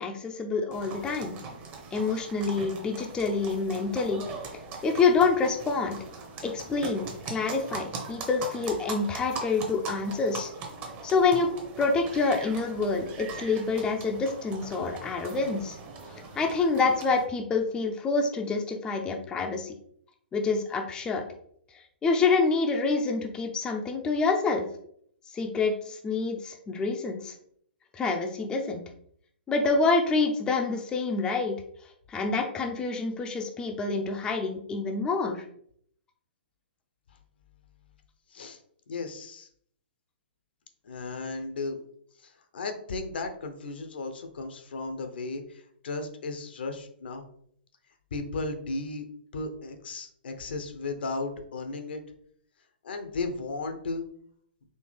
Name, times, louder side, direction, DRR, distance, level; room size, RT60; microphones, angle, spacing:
voice 1, 0.0-1.4 1.9-4.2 4.8-6.0 6.4-10.5 11.0-11.5 11.8-15.8 16.1-19.7 20.3-21.3 22.0-24.7 25.3-27.3 27.9-28.8 29.5-31.6 32.1-35.5, left 4 dB, 15° left, 3 dB, 0.5 m, -27 dB
sound 1, 0.7-17.3, right 4 dB, 30° right, 0.8 m, -41 dB
voice 2, 38.9-39.5 40.8-41.8 42.2-47.3 48.1-49.0 49.3-52.0 52.8-54.0, left 3 dB, 65° left, 7 dB, 0.7 m, -35 dB
4.3 x 2.7 x 3.2 m, 0.65 s
figure-of-eight pair, 125°, 6 cm